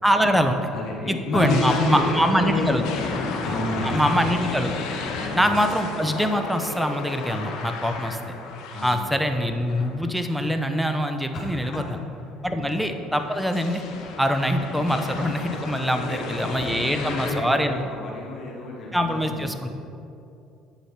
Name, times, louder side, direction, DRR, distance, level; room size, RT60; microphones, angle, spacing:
voice 1, 0.0-0.7 1.1-2.8 3.8-5.0 5.3-8.2 8.8-12.0 12.4-13.8 14.2-17.9 18.9-19.7, equal, 5° right, 6 dB, 0.8 m, -24 dB
voice 2, 0.7-4.0 5.1-5.4 8.7-9.0 11.3-11.8 12.2-12.6 15.9-16.4 16.8-19.6, left 2 dB, 55° left, -4 dB, 1.7 m, -30 dB
sound 1, 1.4-10.4 11.0-11.1 12.5-17.4, left 4 dB, 70° left, 1.2 m, -33 dB
8.8 x 7.0 x 4.4 m, 2.6 s
supercardioid pair, 85°, 0 cm